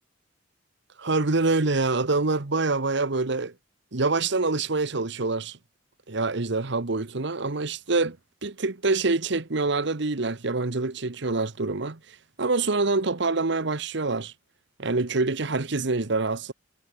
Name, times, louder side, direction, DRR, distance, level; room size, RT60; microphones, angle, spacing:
voice 1, 1.0-3.5 3.9-5.6 6.1-8.2 8.4-12.0 12.4-14.3 14.8-16.5, right 3 dB, 65° right, 1.2 m, -25 dB
head